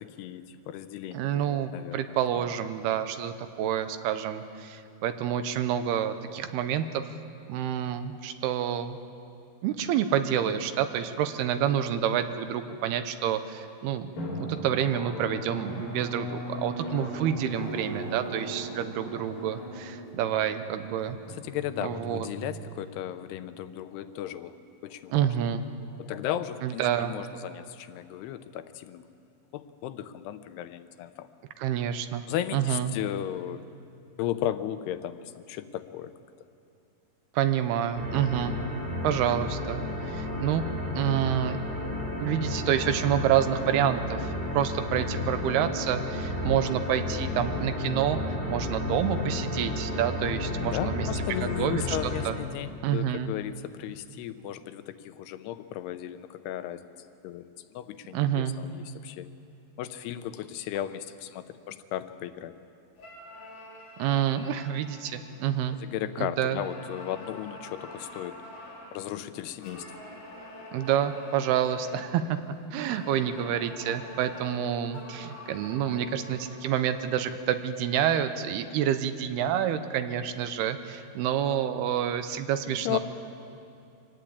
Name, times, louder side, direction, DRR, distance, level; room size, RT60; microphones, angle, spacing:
voice 1, 0.0-2.2 21.3-24.6 24.8-25.3 26.0-29.0 29.5-31.3 32.3-33.6 34.2-36.1 50.7-56.8 57.2-59.3 59.8-62.5 65.8-68.4 68.9-70.0 82.6-83.0, left 12 dB, 85° left, 11 dB, 2.9 m, -35 dB
voice 2, 1.1-7.2 7.5-9.0 9.6-14.1 14.4-21.2 21.8-22.3 25.1-25.6 26.6-27.1 31.6-32.2 32.5-32.9 37.3-38.6 39.0-40.6 40.9-41.6 42.2-48.2 48.5-51.2 51.6-52.0 52.3-52.4 52.8-53.3 58.1-58.6 64.0-65.8 66.2-66.6 70.7-72.4 72.7-83.0, right 10 dB, 80° right, 10 dB, 2.9 m, -28 dB
Drum, 14.2-23.4, right 1 dB, 55° left, 5.2 m, -38 dB
sound 1, 37.9-52.3, left 2 dB, 10° left, 3.4 m, -32 dB
sound 2, 63.0-66.0 66.5-69.1 69.6-72.2 72.9-77.1, left 1 dB, 30° left, 4.1 m, -46 dB
24.5 x 18.5 x 8.6 m, 2.6 s
omnidirectional pair, 4.6 m